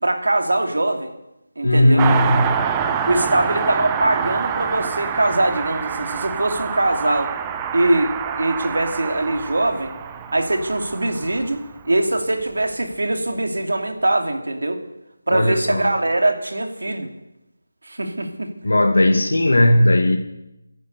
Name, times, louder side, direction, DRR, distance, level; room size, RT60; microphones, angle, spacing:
voice 1, 0.0-1.1 1.6-2.1 3.0-7.3 7.7-9.9 10.3-14.8 15.3-17.1 17.8-18.5, right 2 dB, 90° right, 5 dB, 2.7 m, -22 dB
voice 2, 1.6-2.6 15.3-15.9 18.6-20.2, left 1 dB, 80° left, 4 dB, 1.9 m, -16 dB
Car passing by, 2.0-11.9 12.2-12.3, right 7 dB, 10° right, 0.5 m, -26 dB
15.0 x 10.5 x 8.2 m, 0.91 s
figure-of-eight pair, 180°, 0 cm